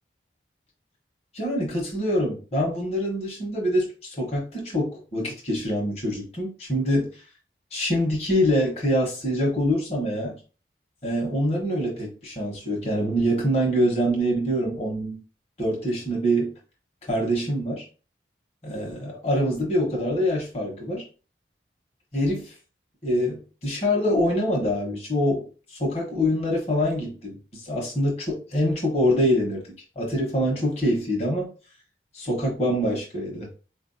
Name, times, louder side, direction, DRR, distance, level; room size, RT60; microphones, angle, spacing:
voice 1, 1.3-7.1 7.7-10.4 11.0-15.2 15.6-16.5 17.1-17.8 18.6-21.0 22.1-22.5 23.0-25.5 25.8-29.6 30.0-31.5 32.1-33.5, equal, 35° left, 1.0 m, -25 dB
4.1 x 2.6 x 2.6 m
head